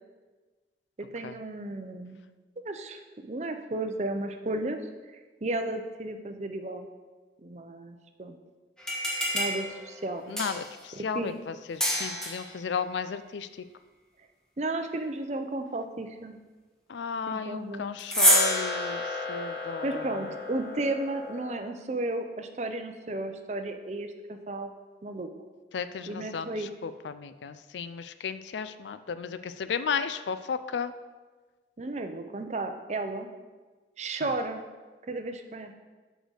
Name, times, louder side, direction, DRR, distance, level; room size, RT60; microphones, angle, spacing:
voice 1, 1.0-2.2 2.6-4.8 5.1-6.9 7.4-8.4 9.3-10.3 10.9-11.3 14.6-16.4 17.3-17.9 19.8-24.7 25.0-25.3 26.1-26.7 31.8-33.3 34.0-34.6 35.1-35.7, right 2 dB, 40° right, 7 dB, 0.6 m, -34 dB
sound 1, 8.8-10.8 11.8-12.5 18.0-21.6, equal, 5° left, 1.2 m, -29 dB
voice 2, 10.3-13.5 16.9-20.2 25.7-30.9 34.2-34.3, left 6 dB, 85° left, 12 dB, 0.4 m, -34 dB
6.4 x 5.0 x 6.4 m, 1.3 s
head